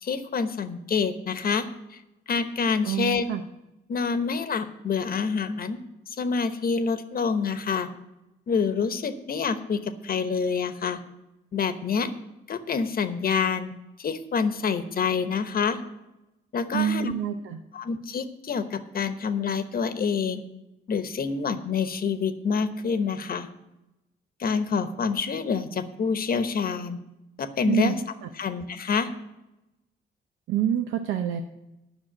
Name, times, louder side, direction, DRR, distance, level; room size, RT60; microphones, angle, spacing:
voice 1, 0.0-2.0 2.3-3.2 3.9-5.8 6.2-7.9 8.5-11.0 11.5-12.1 12.5-13.7 14.0-15.8 16.5-17.1 17.7-20.4 20.9-23.5 24.4-27.0 27.4-28.0 28.4-29.1, left 5 dB, 50° left, 10 dB, 1.1 m, -27 dB
voice 2, 2.8-3.4 16.7-17.6 27.6-27.9 30.5-31.4, right 10 dB, 80° right, 5 dB, 0.7 m, -26 dB
10.5 x 6.1 x 8.7 m, 0.94 s
cardioid pair, 90°, 20 cm